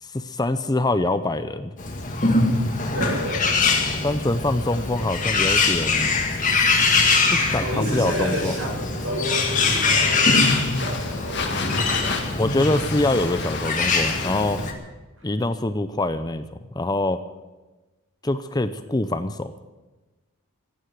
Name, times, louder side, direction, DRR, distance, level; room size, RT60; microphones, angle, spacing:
voice 1, 0.0-1.7 4.0-6.2 7.3-8.6 12.4-14.6 15.2-16.4 16.7-17.2 18.2-19.5, left 2 dB, 20° left, 11 dB, 0.6 m, -24 dB
Bird, 1.8-14.7, left 3 dB, 35° left, 1.9 m, -23 dB
voice 2, 2.9-3.5 7.6-12.2, equal, 65° right, -2 dB, 7.4 m, -30 dB
sound 1, 9.3-14.7, left 4 dB, 50° left, 2.0 m, -32 dB
15.0 x 9.9 x 9.3 m, 1.2 s
head